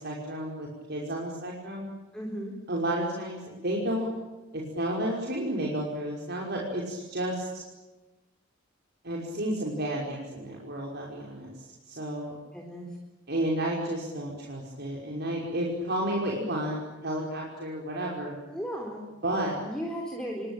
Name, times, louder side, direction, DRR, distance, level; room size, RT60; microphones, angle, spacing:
voice 1, 0.0-1.9 2.7-4.1 4.5-7.6 9.0-12.3 13.3-16.8 17.0-18.3 19.2-19.6, right 1 dB, 55° right, -2 dB, 5.6 m, -31 dB
voice 2, 2.1-2.5 12.5-13.0 18.5-19.0 19.6-20.5, equal, 5° left, -1 dB, 4.2 m, -35 dB
27.5 x 24.0 x 9.0 m, 1.1 s
head